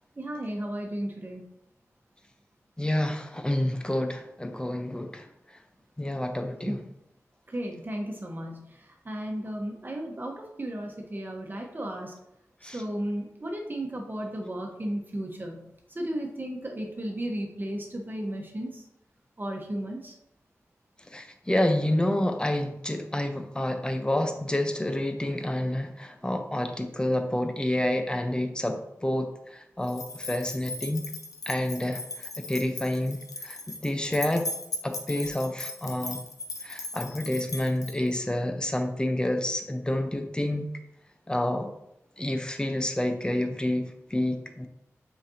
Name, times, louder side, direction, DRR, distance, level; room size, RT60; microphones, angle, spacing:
voice 1, 0.2-1.5 6.6-6.9 7.5-12.2 12.6-18.8 19.4-20.1, right 1 dB, 35° right, 1 dB, 1.3 m, -34 dB
voice 2, 2.8-5.2 6.0-6.8 12.6-12.8 21.1-31.1 31.5-34.5 34.8-36.2 36.6-40.7 41.3-41.7 42.2-44.7, left 1 dB, 15° left, 6 dB, 0.9 m, -29 dB
sound 1, 29.9-38.2, left 2 dB, 75° left, 0.7 m, -38 dB
6.5 x 5.1 x 2.9 m, 0.81 s
cardioid pair, 50°, 6 cm